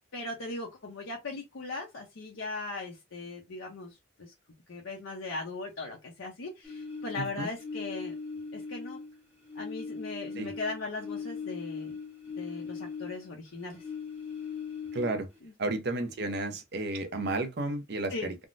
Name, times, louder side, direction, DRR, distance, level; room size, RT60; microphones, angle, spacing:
voice 1, 0.1-4.3 4.7-8.1 8.5-9.0 9.6-12.0 12.4-13.8 18.1-18.3, left 3 dB, 80° left, 0.7 m, -39 dB
sound 1, 6.6-9.2 9.4-13.4 13.7-15.4, left 5 dB, 10° right, 0.9 m, -39 dB
voice 2, 7.1-7.5 10.4-10.5 14.9-15.3 15.6-18.3, right 2 dB, 55° right, 0.7 m, -32 dB
3.5 x 2.0 x 2.5 m
head